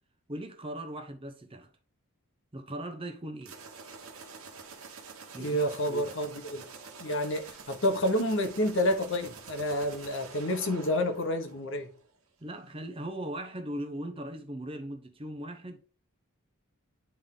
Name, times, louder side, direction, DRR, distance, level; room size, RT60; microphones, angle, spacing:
voice 1, 0.3-1.7 2.5-3.6 5.3-6.1 12.4-15.8, right 1 dB, 25° right, 0.8 m, -39 dB
sound 1, 3.4-12.0, right 5 dB, 75° right, 1.5 m, -47 dB
voice 2, 5.4-6.6 7.0-11.9, left 1 dB, 55° left, 1.2 m, -29 dB
9.6 x 3.6 x 3.8 m
head